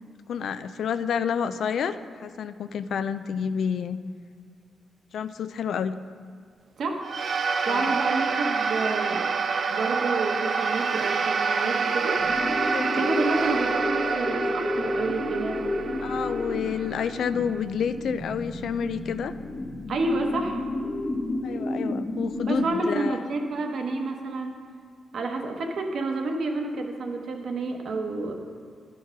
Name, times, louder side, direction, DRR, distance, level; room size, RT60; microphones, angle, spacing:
voice 1, 0.3-4.0 5.1-6.0 7.7-7.9 12.7-13.1 16.0-19.3 21.4-23.3, left 7 dB, 75° left, 12 dB, 0.3 m, -29 dB
voice 2, 6.8-7.1 7.7-9.3 9.7-12.3 13.0-15.6 19.9-20.6 22.5-24.6 25.1-28.3, right 3 dB, 65° right, 3 dB, 1.0 m, -29 dB
sound 1, 7.0-17.6, right 5 dB, 50° right, 0.4 m, -27 dB
sound 2, 12.2-22.7, left 2 dB, 20° left, 0.8 m, -31 dB
11.0 x 4.6 x 5.8 m, 2.1 s
wide cardioid pair, 130°, 0 cm